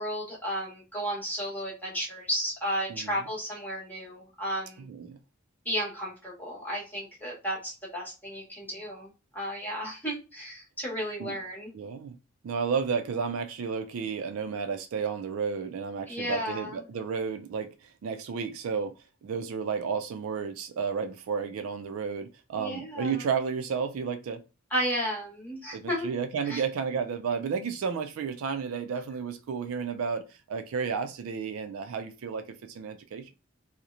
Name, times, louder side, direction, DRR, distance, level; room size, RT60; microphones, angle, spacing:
voice 1, 0.0-4.8 5.6-11.7 16.1-16.8 22.5-23.2 24.7-26.1 26.5-26.6, equal, 10° left, 1.0 m, -33 dB
voice 2, 4.8-5.2 11.2-11.4 11.7-12.2 12.4-18.9 19.2-24.4 25.7-33.3, right 6 dB, 70° right, 0.3 m, -32 dB
2.8 x 2.0 x 2.4 m
head